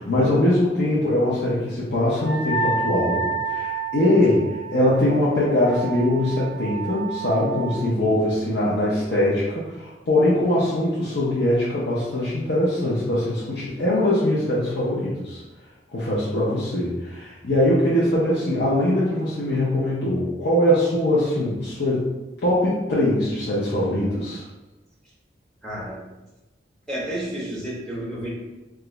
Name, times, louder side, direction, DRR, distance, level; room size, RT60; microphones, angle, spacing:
voice 1, 0.0-15.4 15.9-22.1 22.4-24.4, left 1 dB, 70° left, -8 dB, 0.6 m, -22 dB
Wind instrument woodwind instrument, 2.2-7.8, right 4 dB, 45° left, 1.1 m, -30 dB
voice 2, 8.0-8.3 25.6-26.0 26.9-28.3, right 1 dB, 5° left, -7 dB, 0.8 m, -31 dB
3.0 x 2.4 x 3.0 m, 1.1 s
head